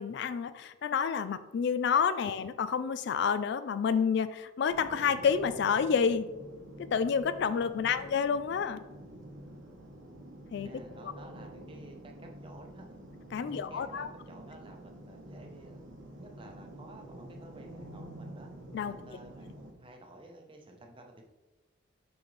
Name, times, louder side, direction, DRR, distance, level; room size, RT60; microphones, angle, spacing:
voice 1, 0.0-6.3 6.8-8.8 10.5-10.7 11.0-11.1 13.3-14.1 18.7-18.9, left 6 dB, 55° left, 13 dB, 0.3 m, -29 dB
sound 1, 4.7-19.7, right 1 dB, 70° right, 1.1 m, -48 dB
voice 2, 10.6-13.0 13.4-15.8 16.2-18.5 18.8-21.2, right 1 dB, 25° right, 2 dB, 0.8 m, -52 dB
6.1 x 5.1 x 3.2 m, 1.1 s
head